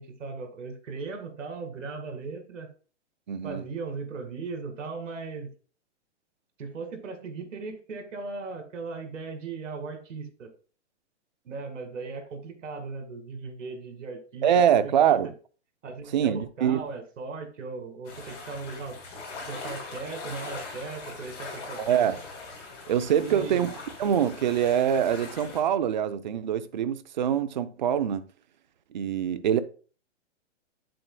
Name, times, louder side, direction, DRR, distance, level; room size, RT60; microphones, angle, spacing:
voice 1, 0.0-2.7 3.4-5.5 6.6-10.5 11.4-14.5 14.8-15.2 15.8-19.0 19.5-22.1 23.2-23.7, right 4 dB, 80° right, 2.2 m, -38 dB
voice 2, 3.3-3.6 14.4-15.3 16.1-16.8 21.8-22.2 22.9-23.7 24.0-28.2 28.9-29.6, right 9 dB, 40° right, 0.4 m, -24 dB
sound 1, 18.0-25.6, left 3 dB, 40° left, 4.2 m, -41 dB
8.0 x 7.6 x 2.2 m
hypercardioid pair, 170°, 37 cm